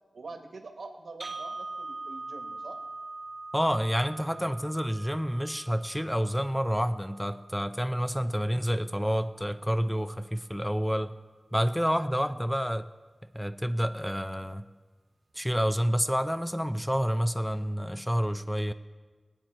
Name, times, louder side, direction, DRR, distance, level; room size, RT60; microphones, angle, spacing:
voice 1, 0.1-2.8 8.1-8.3 12.2-12.4, right 3 dB, 90° right, 5 dB, 1.3 m, -45 dB
sound 1, 1.2-9.2, right 3 dB, 50° right, 0.7 m, -43 dB
voice 2, 3.5-11.1 11.5-12.9 13.3-14.7 15.3-18.7, equal, 5° left, 10 dB, 0.5 m, -29 dB
21.0 x 8.7 x 4.4 m, 1.4 s
wide cardioid pair, 85°, 0 cm